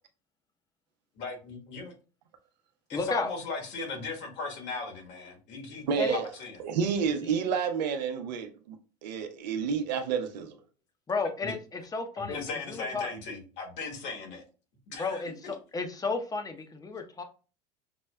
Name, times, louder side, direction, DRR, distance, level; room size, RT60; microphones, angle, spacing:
voice 1, 1.2-1.9 2.9-6.6 11.4-11.5 12.2-14.4 14.9-15.2, left 3 dB, 55° left, 3 dB, 1.3 m, -37 dB
voice 2, 2.9-3.3 6.0-6.2 11.1-13.1 14.9-17.2, left 3 dB, 15° left, 6 dB, 0.7 m, -33 dB
voice 3, 5.9-6.3 6.6-8.8 9.0-10.6, right 6 dB, 85° right, 6 dB, 0.7 m, -29 dB
6.0 x 2.1 x 2.2 m, 0.36 s
supercardioid pair, 95°, 21 cm